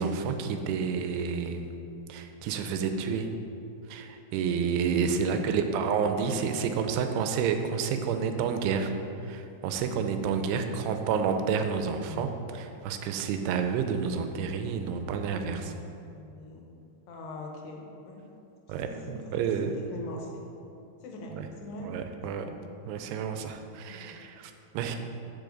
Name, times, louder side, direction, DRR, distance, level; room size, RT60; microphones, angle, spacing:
voice 1, 0.0-1.7 2.1-3.3 3.9-8.9 9.2-15.7 18.7-19.7 21.3-21.4 21.9-22.5 22.9-25.0, right 6 dB, 85° right, 6 dB, 2.7 m, -30 dB
voice 2, 5.3-5.8 10.8-11.1 15.9-16.7 17.1-18.3 18.7-20.4 21.0-21.9 22.3-22.7 23.9-24.2, left 2 dB, 85° left, 0 dB, 3.1 m, -44 dB
13.5 x 5.3 x 3.9 m, 2.7 s
omnidirectional pair, 4.7 m